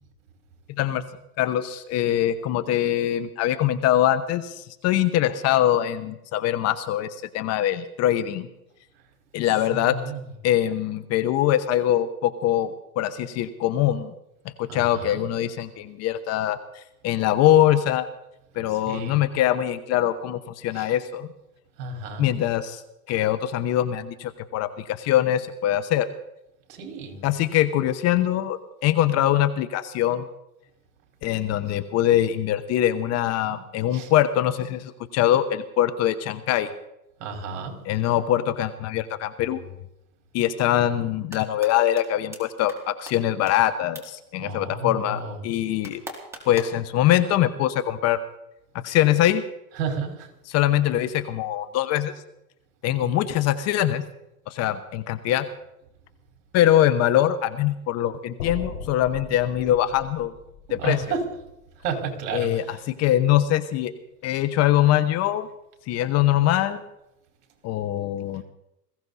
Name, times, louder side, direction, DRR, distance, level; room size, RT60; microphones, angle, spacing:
voice 1, 1.4-8.5 9.3-10.0 10.4-14.1 14.6-18.1 18.5-21.3 22.2-22.8 23.1-26.1 27.2-30.3 31.2-36.7 37.8-39.6 40.3-46.0 46.4-48.2 48.8-49.4 50.5-52.1 52.8-54.0 54.5-55.5 56.5-60.3 60.7-61.2 62.3-63.9 64.2-65.5 65.9-66.8 67.6-68.4, left 12 dB, 35° left, 12 dB, 1.0 m, -23 dB
voice 2, 9.7-10.2 14.7-15.2 18.9-19.2 20.7-20.9 21.8-22.3 26.7-27.3 33.5-33.6 33.9-34.1 37.2-37.8 44.4-45.4 49.8-50.3 60.7-61.2 61.8-62.8, right 5 dB, 55° right, 3 dB, 5.0 m, -32 dB
sound 1, 41.1-41.7 42.0-42.1 42.3-42.4 42.7-42.8 43.1-43.2 43.5-43.6 43.9-44.0 45.8-46.8, right 1 dB, 5° right, 3.8 m, -38 dB
sound 2, 58.4-62.6, left 5 dB, 70° left, 5.0 m, -40 dB
20.5 x 16.0 x 4.2 m, 0.84 s
hypercardioid pair, 125°, 46 cm